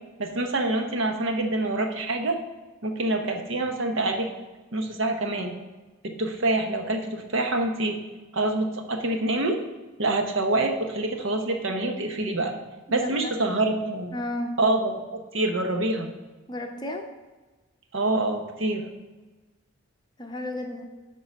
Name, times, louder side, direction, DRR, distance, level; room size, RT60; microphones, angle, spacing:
voice 1, 0.2-2.4 2.8-4.3 4.7-5.6 6.0-8.0 8.3-9.6 10.0-12.5 12.9-14.1 14.6-16.1 17.9-18.8, right 2 dB, 65° right, 4 dB, 1.0 m, -26 dB
voice 2, 12.9-13.3 14.1-14.6 16.5-17.1 20.2-20.9, left 1 dB, 20° left, 3 dB, 0.7 m, -33 dB
11.0 x 3.8 x 5.3 m, 1.2 s
head